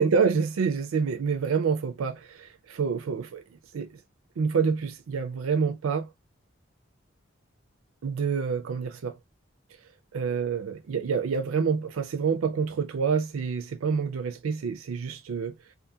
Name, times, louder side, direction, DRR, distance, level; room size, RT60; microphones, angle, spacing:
voice 1, 0.0-3.4 3.7-4.0 4.4-6.1 8.0-9.2 10.1-15.5, right 5 dB, 85° right, 0.4 m, -27 dB
2.5 x 2.4 x 2.6 m
head